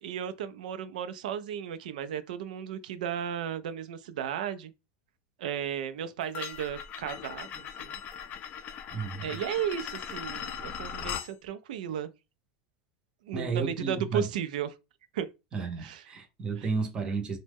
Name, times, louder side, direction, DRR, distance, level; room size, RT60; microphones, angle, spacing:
voice 1, 0.0-4.7 5.4-8.0 9.2-12.1 13.2-14.7 15.1-15.3 15.8-16.0 16.6-16.7, right 9 dB, 85° right, 0.4 m, -34 dB
sound 1, 6.3-11.3, left 8 dB, 35° left, 0.4 m, -39 dB
voice 2, 8.9-9.4 13.3-14.3 15.5-17.4, right 5 dB, 20° right, 0.6 m, -32 dB
2.9 x 2.1 x 3.4 m
supercardioid pair, 140°, 4 cm